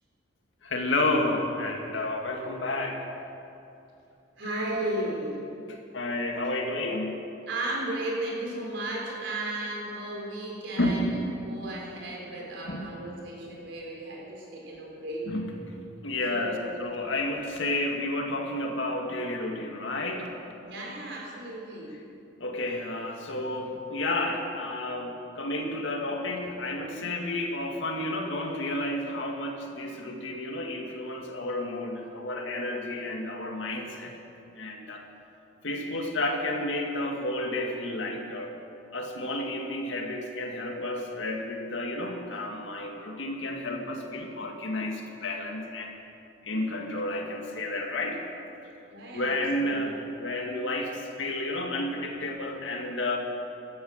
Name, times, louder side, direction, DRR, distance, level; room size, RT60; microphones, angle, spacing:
voice 1, 0.6-3.1 5.7-7.1 10.8-11.1 12.6-12.9 15.3-15.5 16.0-20.3 22.4-34.2 34.6-35.0 35.6-38.6 38.9-45.9 46.4-48.2 49.1-53.2, left 1 dB, 70° left, 2 dB, 2.1 m, -31 dB
voice 2, 4.4-5.5 5.9-6.0 7.5-11.1 11.4-15.3 16.3-16.8 20.6-22.0 48.9-50.1, right 1 dB, 70° right, -2 dB, 4.5 m, -35 dB
16.0 x 13.0 x 6.5 m, 2.7 s
head